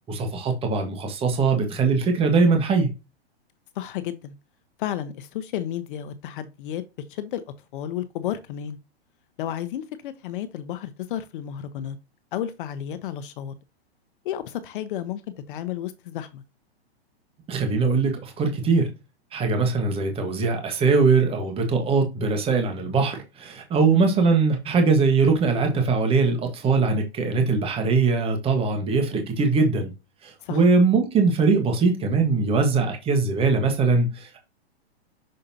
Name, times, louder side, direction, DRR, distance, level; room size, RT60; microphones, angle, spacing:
voice 1, 0.1-2.9 17.5-18.9 19.3-29.9 30.2-34.4, right 4 dB, 15° right, 1.5 m, -21 dB
voice 2, 3.7-4.3 4.8-6.8 7.1-7.4 7.7-8.8 9.4-12.0 12.3-13.5 14.2-15.2 15.5-16.4 23.8-24.2 30.4-30.6, left 11 dB, 55° left, 0.9 m, -32 dB
6.6 x 5.0 x 2.8 m
hypercardioid pair, 145°, 32 cm